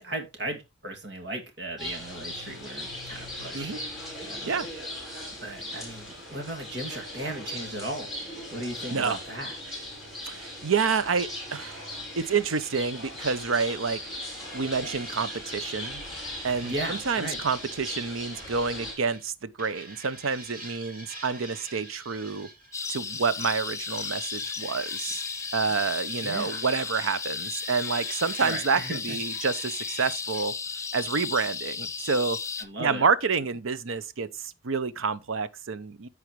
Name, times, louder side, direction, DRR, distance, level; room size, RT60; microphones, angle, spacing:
voice 1, 0.0-4.5 5.4-8.1 8.5-9.6 16.6-17.4 25.6-25.8 26.2-26.6 28.4-29.2 32.6-33.1, right 1 dB, 55° right, 2.4 m, -36 dB
sound 1, 1.8-18.9, left 1 dB, ahead, 5.1 m, -39 dB
voice 2, 10.2-14.0 14.5-16.0 16.4-22.5 22.9-25.2 25.5-30.5 30.9-32.4 32.8-36.1, right 5 dB, 85° right, 0.7 m, -28 dB
sound 2, 13.6-19.3 19.6-30.4, right 2 dB, 40° right, 3.7 m, -46 dB
sound 3, 22.7-32.6, left 5 dB, 15° left, 0.5 m, -34 dB
14.5 x 4.9 x 3.1 m
head